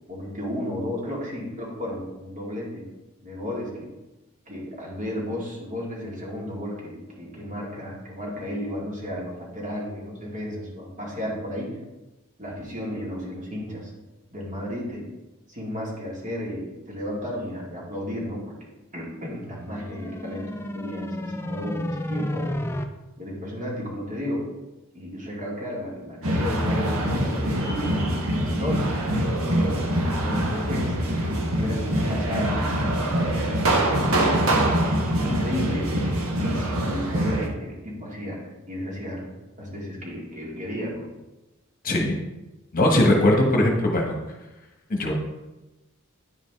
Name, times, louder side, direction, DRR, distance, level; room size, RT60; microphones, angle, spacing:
voice 1, 0.1-2.8 3.2-3.9 4.5-11.8 12.4-13.9 14.3-15.1 15.5-18.6 18.9-22.5 23.2-24.5 24.9-28.9 29.4-29.8 30.2-33.6 35.2-38.4 38.7-39.3 39.6-41.1, left 1 dB, 35° right, -4 dB, 2.2 m, -33 dB
sound 1, 19.5-22.8, left 1 dB, 10° left, 0.4 m, -31 dB
sound 2, 26.2-37.5, right 1 dB, 80° right, 1.3 m, -24 dB
voice 2, 41.8-42.2 42.7-44.1 44.9-45.1, left 1 dB, 40° left, 1 dB, 1.1 m, -20 dB
9.7 x 5.0 x 3.5 m, 1.0 s
head